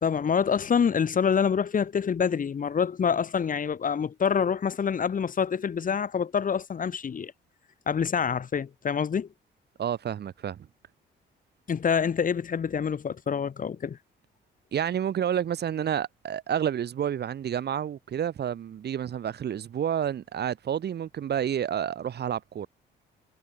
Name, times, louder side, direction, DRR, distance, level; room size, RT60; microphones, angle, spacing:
voice 1, 0.0-7.3 7.9-9.3 11.7-14.0, left 7 dB, 45° left, 1.6 m, -26 dB
voice 2, 9.8-10.7 14.7-22.7, right 9 dB, 55° right, 1.7 m, -29 dB
cardioid pair, 90°, 20 cm